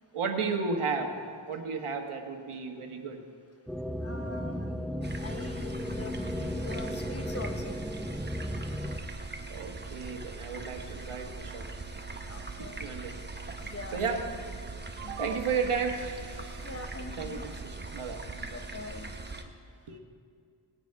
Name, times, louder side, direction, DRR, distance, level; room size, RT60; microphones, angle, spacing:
voice 1, 0.1-1.1 1.5-3.2 9.5-11.7 12.8-13.2 13.6-14.2 15.0-16.7 17.2-18.2 19.9-20.0, right 5 dB, 80° right, 4 dB, 1.4 m, -33 dB
sound 1, 3.7-9.0, equal, ahead, 0.6 m, -35 dB
voice 2, 4.0-4.7 5.2-7.7 12.3-12.8 13.6-14.2 15.0-15.3 16.6-17.4 18.4-19.1, left 3 dB, 30° left, 6 dB, 0.9 m, -43 dB
sound 2, 5.0-19.4, right 3 dB, 20° right, 1.0 m, -41 dB
19.0 x 9.3 x 4.7 m, 2.3 s
wide cardioid pair, 90°, 50 cm